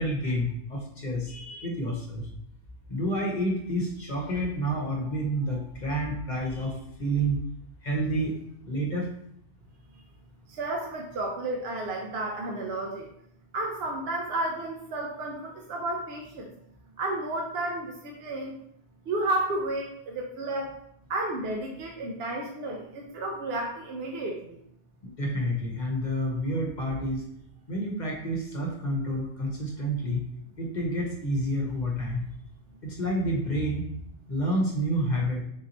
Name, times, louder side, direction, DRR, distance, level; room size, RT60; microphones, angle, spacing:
voice 1, 0.0-2.2 2.9-7.4 7.8-8.3 8.6-9.1 25.0-27.2 27.7-30.2 30.6-32.2 32.8-33.8 34.3-35.4, equal, 45° left, -1 dB, 0.9 m, -29 dB
voice 2, 10.5-13.1 13.5-16.5 17.0-18.5 19.1-20.8 21.1-24.6, right 2 dB, 65° right, 1 dB, 0.8 m, -32 dB
3.8 x 2.8 x 4.0 m, 0.74 s
omnidirectional pair, 1.2 m